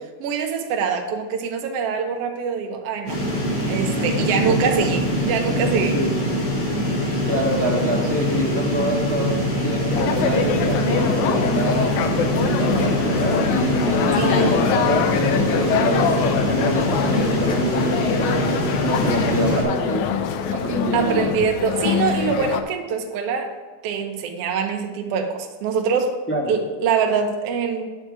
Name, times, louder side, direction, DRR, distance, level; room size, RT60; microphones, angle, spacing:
voice 1, 0.2-3.2 3.7-6.0 14.1-14.6 20.9-23.5 23.8-26.2 26.5-27.9, right 6 dB, 65° right, 4 dB, 1.6 m, -24 dB
sound 1, 3.1-19.6, equal, 55° left, 4.2 m, -23 dB
voice 2, 4.0-4.9 5.9-6.1 7.2-11.9 12.3-20.0 20.5-21.3 26.3-26.5, right 1 dB, 15° left, -4 dB, 0.4 m, -26 dB
sound 2, 9.9-22.6, left 7 dB, 80° left, 1.9 m, -24 dB
8.8 x 4.6 x 7.4 m, 1.4 s
omnidirectional pair, 3.7 m